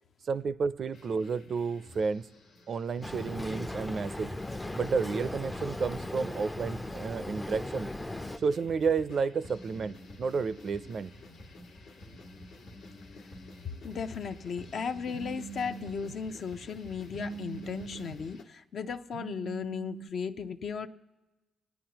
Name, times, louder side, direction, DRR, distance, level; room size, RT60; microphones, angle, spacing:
voice 1, 0.3-2.3 2.7-4.4 4.7-7.9 8.4-11.1, right 5 dB, 50° right, 0.4 m, -31 dB
sound 1, 0.9-18.4, left 2 dB, 85° left, 1.5 m, -51 dB
Boat Water vehicle, 3.0-8.4, left 1 dB, 10° left, 0.4 m, -38 dB
voice 2, 13.8-20.9, left 6 dB, 60° left, 0.6 m, -36 dB
Telephone, 15.1-16.2 17.1-18.2 19.1-20.1, right 7 dB, 90° right, 0.7 m, -43 dB
26.5 x 9.3 x 2.9 m
cardioid pair, 90°, 0 cm